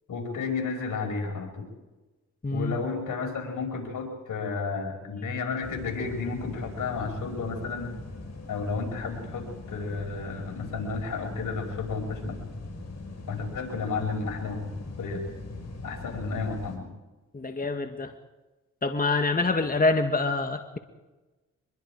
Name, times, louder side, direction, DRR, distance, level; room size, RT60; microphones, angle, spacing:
voice 1, 0.1-1.7 2.5-7.9 8.5-12.4 13.3-14.7 15.0-15.2 15.8-16.9, left 4 dB, 80° left, 3 dB, 5.5 m, -32 dB
voice 2, 2.4-2.8 17.3-18.1 18.8-20.8, left 3 dB, 25° left, 6 dB, 2.0 m, -26 dB
sound 1, 5.6-16.8, left 3 dB, 55° left, 5.6 m, -41 dB
24.5 x 22.5 x 4.9 m, 1.1 s
cardioid pair, 55°, 31 cm